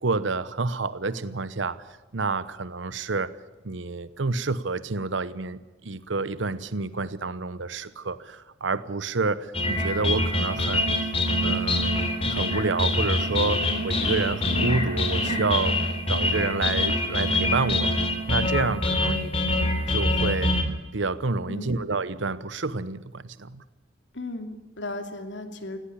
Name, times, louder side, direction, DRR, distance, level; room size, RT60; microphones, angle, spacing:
voice 1, 0.0-1.8 2.1-3.3 3.6-10.9 11.4-15.8 16.1-19.3 19.9-20.6 20.9-23.6, right 3 dB, 85° right, 15 dB, 0.9 m, -29 dB
sound 1, 9.5-20.6, left 1 dB, 30° left, 3.2 m, -25 dB
voice 2, 21.5-21.8 24.1-25.8, left 2 dB, 75° left, 6 dB, 2.8 m, -36 dB
19.0 x 17.5 x 10.0 m, 1.1 s
head